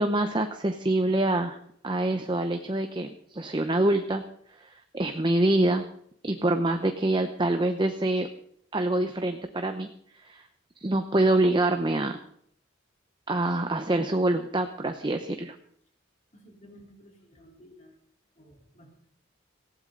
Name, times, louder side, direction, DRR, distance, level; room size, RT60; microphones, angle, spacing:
voice 1, 0.0-1.6 1.8-4.2 4.6-4.7 4.9-5.8 6.2-8.3 8.7-9.9 10.2-10.4 10.8-12.2 13.3-15.5, right 1 dB, 25° right, 6 dB, 0.8 m, -25 dB
voice 2, 16.3-18.0 18.4-19.1, equal, 35° left, 1 dB, 3.6 m, -54 dB
18.5 x 16.0 x 3.9 m, 0.66 s
head